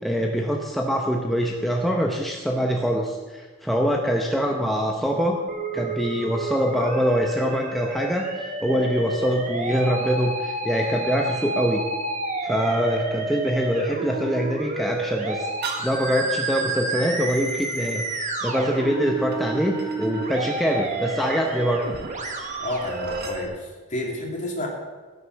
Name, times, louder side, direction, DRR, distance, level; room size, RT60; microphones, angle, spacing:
voice 1, 0.0-5.4 5.7-11.8 12.4-15.5 15.8-21.8, equal, ahead, 0 dB, 0.8 m, -24 dB
Musical instrument, 5.5-23.4, right 2 dB, 35° right, 1.4 m, -30 dB
sound 1, 15.6-23.4, right 5 dB, 50° right, 1.6 m, -42 dB
voice 2, 22.6-24.7, left 1 dB, 35° left, -1 dB, 2.7 m, -30 dB
15.5 x 6.8 x 6.3 m, 1.4 s
head